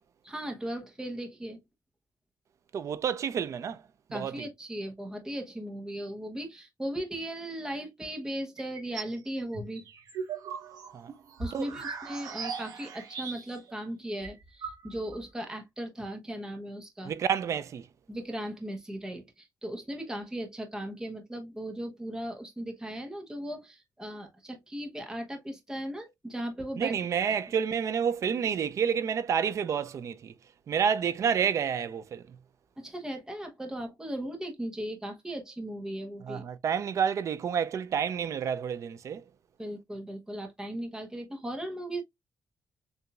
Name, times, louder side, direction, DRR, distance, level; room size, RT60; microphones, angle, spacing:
voice 1, 0.2-1.6 4.1-9.8 11.4-17.1 18.1-27.0 32.8-36.4 39.6-42.0, right 1 dB, 10° right, 1.0 m, -37 dB
voice 2, 2.7-3.8 4.1-4.5 10.9-11.1 11.5-11.7 17.0-17.9 26.8-30.3 30.7-32.2 36.2-39.2, right 7 dB, 50° right, 0.5 m, -29 dB
sound 1, 8.6-9.2 9.5-13.7 14.0-14.1 14.2-15.2, right 5 dB, 75° right, 1.3 m, -39 dB
6.8 x 2.7 x 2.3 m
wide cardioid pair, 150°, 7 cm